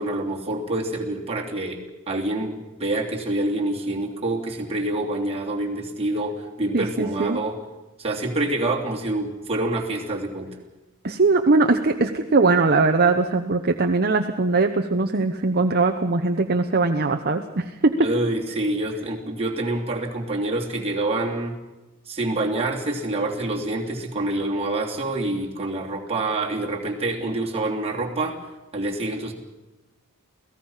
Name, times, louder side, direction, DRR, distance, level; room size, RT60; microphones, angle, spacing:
voice 1, 0.0-7.6 8.0-10.5 18.0-21.6 22.1-28.4 28.7-29.3, right 2 dB, 30° right, -1 dB, 3.1 m, -26 dB
voice 2, 6.7-7.4 11.0-17.9, right 3 dB, 45° right, 5 dB, 1.0 m, -21 dB
28.5 x 17.5 x 5.7 m, 1.1 s
head